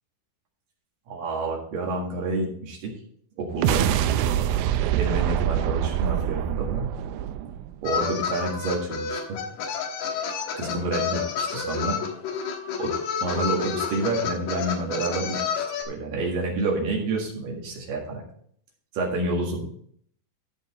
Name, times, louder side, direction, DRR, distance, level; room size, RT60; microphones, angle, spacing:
voice 1, 1.1-2.9 3.4-3.9 4.9-6.9 7.8-9.4 10.6-12.0 12.8-12.9 13.2-18.2 18.9-19.7, right 2 dB, 60° right, -2 dB, 3.1 m, -28 dB
sound 1, 3.5-8.0, right 11 dB, 85° right, 2.1 m, -25 dB
sound 2, 7.9-15.8, left 7 dB, 75° left, 3.1 m, -29 dB
13.5 x 5.3 x 4.2 m, 0.63 s
omnidirectional pair, 4.9 m